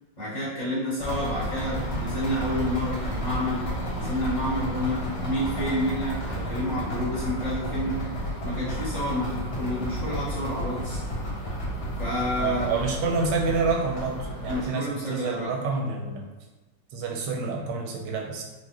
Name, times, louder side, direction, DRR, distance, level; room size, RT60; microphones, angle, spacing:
voice 1, 0.2-7.9 8.4-11.0 12.0-12.7 14.4-15.5, left 1 dB, 40° left, -11 dB, 1.6 m, -29 dB
sound 1, 1.0-14.7, equal, 60° left, 1.7 m, -32 dB
voice 2, 12.4-16.2 16.9-18.4, right 4 dB, 70° right, 1 dB, 1.1 m, -28 dB
4.8 x 2.1 x 2.9 m, 1.2 s
omnidirectional pair, 2.1 m